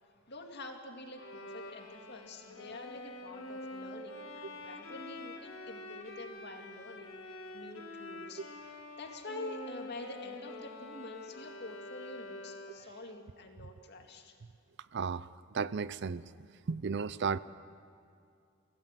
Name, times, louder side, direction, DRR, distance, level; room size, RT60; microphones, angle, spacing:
voice 1, 0.0-14.3, left 2 dB, 55° left, 3 dB, 2.3 m, -47 dB
Bowed string instrument, 1.2-13.0, left 2 dB, 85° left, 2.1 m, -46 dB
voice 2, 14.9-16.2 16.7-17.4, right 5 dB, 60° right, 17 dB, 0.5 m, -34 dB
24.0 x 16.5 x 7.6 m, 2.5 s
head